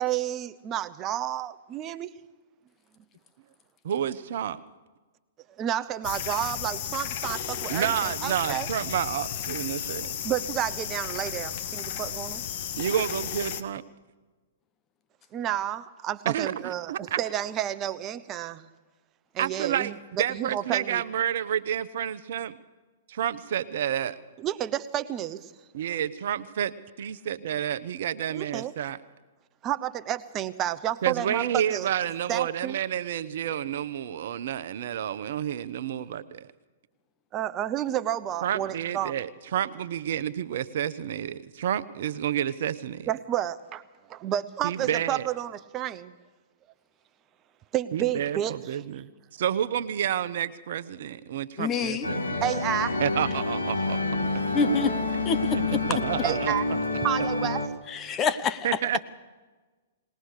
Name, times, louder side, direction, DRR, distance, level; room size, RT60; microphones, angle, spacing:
voice 1, 0.0-2.1 5.6-8.7 10.2-12.4 15.3-18.6 19.3-21.0 24.4-25.5 28.3-28.7 29.6-31.9 32.3-32.8 37.3-39.1 43.1-43.8 44.1-46.1 47.7-48.5 52.4-53.0 56.2-56.6 57.0-57.7, right 11 dB, 30° right, 12 dB, 0.9 m, -30 dB
voice 2, 3.8-4.6 7.7-10.1 12.8-13.8 16.2-17.2 19.4-19.9 20.2-22.6 23.1-24.2 25.7-29.0 31.0-36.5 38.4-43.1 44.6-45.3 47.9-49.1 49.4-52.4 53.0-54.0 55.5-55.6 55.9-56.8 58.6-59.0, right 10 dB, 60° right, 14 dB, 0.9 m, -30 dB
sound 1, 6.0-13.6, left 9 dB, 50° left, 1.4 m, -34 dB
voice 3, 51.6-52.1 54.5-54.9 55.2-55.8 57.9-58.7, left 5 dB, 25° left, 12 dB, 1.1 m, -26 dB
sound 2, 52.0-57.7, left 3 dB, 85° left, 2.4 m, -28 dB
20.5 x 19.5 x 6.6 m, 1.3 s
hypercardioid pair, 120°, 0 cm